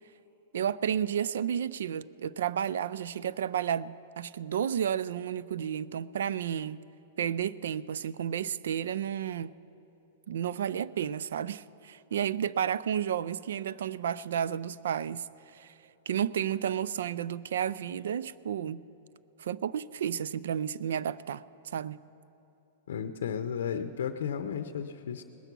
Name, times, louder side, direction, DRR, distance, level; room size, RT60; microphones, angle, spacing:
voice 1, 0.5-6.8 7.2-9.5 10.3-15.7 16.1-18.8 19.4-22.0, right 9 dB, 80° right, 20 dB, 0.3 m, -32 dB
voice 2, 22.9-25.2, left 7 dB, 85° left, 8 dB, 0.6 m, -34 dB
20.0 x 8.0 x 6.0 m, 3.0 s
supercardioid pair, 160°, 0 cm